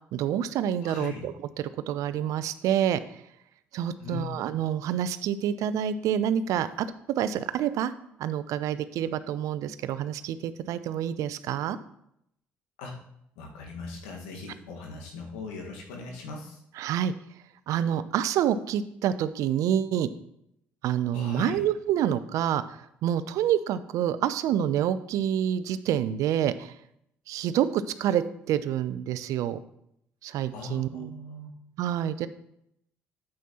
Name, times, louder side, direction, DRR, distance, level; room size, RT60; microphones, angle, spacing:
voice 1, 0.1-3.0 3.7-6.9 7.2-7.9 8.2-11.8 16.8-17.1 17.7-20.1 20.8-26.7 27.3-29.6 30.2-31.1 31.8-32.3, right 10 dB, 65° right, 14 dB, 0.5 m, -27 dB
voice 2, 0.8-1.2 4.0-4.5 12.8-13.0 13.3-16.6 21.1-21.6 30.5-31.5, left 4 dB, 80° left, 1 dB, 1.5 m, -39 dB
9.1 x 7.7 x 2.9 m, 0.75 s
hypercardioid pair, 50°, 6 cm